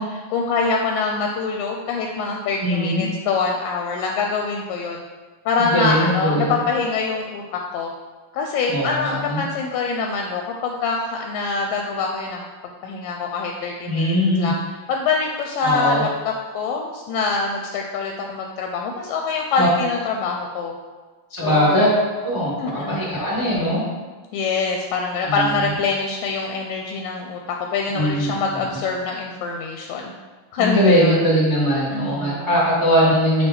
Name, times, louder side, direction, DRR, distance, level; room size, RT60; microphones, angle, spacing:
voice 1, 0.0-5.0 5.5-7.9 8.3-12.5 12.8-14.6 14.9-20.8 21.3-21.8 22.6-23.2 24.3-30.1 30.5-31.2 31.9-32.6, left 4 dB, 80° left, 2 dB, 2.1 m, -25 dB
voice 2, 2.6-3.1 5.6-6.6 8.7-9.4 13.9-14.5 15.6-16.0 19.6-19.7 21.3-21.9 22.2-23.8 25.2-25.5 27.9-28.6 30.6-33.5, equal, 50° right, -7 dB, 0.3 m, -20 dB
7.1 x 3.3 x 5.8 m, 1.3 s
omnidirectional pair, 4.2 m